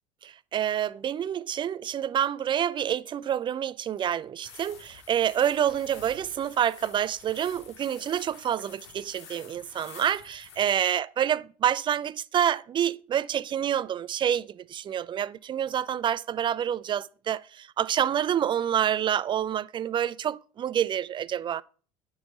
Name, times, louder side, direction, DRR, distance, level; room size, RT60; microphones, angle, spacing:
voice 1, 0.2-21.6, right 10 dB, 35° right, 0.4 m, -28 dB
sound 1, 4.4-10.7, left 6 dB, 80° left, 1.9 m, -49 dB
9.3 x 5.6 x 3.7 m
hypercardioid pair, 75°, 15 cm